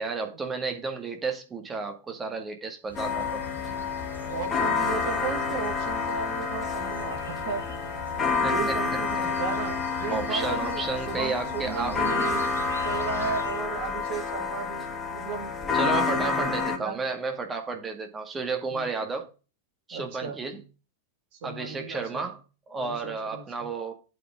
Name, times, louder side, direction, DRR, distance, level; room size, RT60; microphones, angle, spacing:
voice 1, 0.0-3.4 8.4-8.7 10.1-12.0 15.7-19.3 19.9-20.6 21.4-22.4 22.7-23.9, right 4 dB, 15° right, 2.0 m, -32 dB
sound 1, 2.9-13.6, left 2 dB, 85° left, 2.0 m, -42 dB
sound 2, 2.9-16.8, left 4 dB, 20° left, 2.6 m, -29 dB
voice 2, 4.3-7.8 8.5-12.4 12.8-15.5 15.8-17.0 18.7-18.9 19.9-20.4 21.4-22.2 22.7-23.7, right 6 dB, 50° right, 3.0 m, -35 dB
8.6 x 4.9 x 4.7 m
figure-of-eight pair, 90°, 0 cm